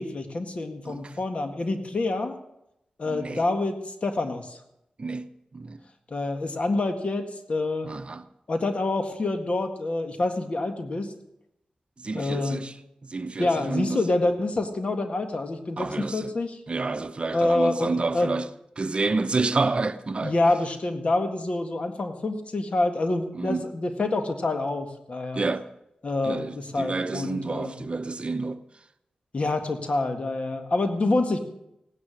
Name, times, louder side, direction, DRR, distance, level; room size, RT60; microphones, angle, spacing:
voice 1, 0.0-2.4 3.0-4.6 6.1-7.9 8.5-11.1 12.1-12.6 13.4-16.6 17.3-18.4 20.2-25.4 26.0-27.8 29.3-31.4, left 2 dB, 55° left, 1.9 m, -27 dB
voice 2, 3.1-3.4 5.0-5.8 7.8-8.2 12.0-12.7 13.0-14.0 15.8-16.3 16.7-18.5 18.8-20.3 23.3-23.7 25.3-25.6 26.2-28.6, right 3 dB, 45° right, 0.8 m, -29 dB
17.5 x 9.9 x 6.5 m
cardioid pair, 60°, 3 cm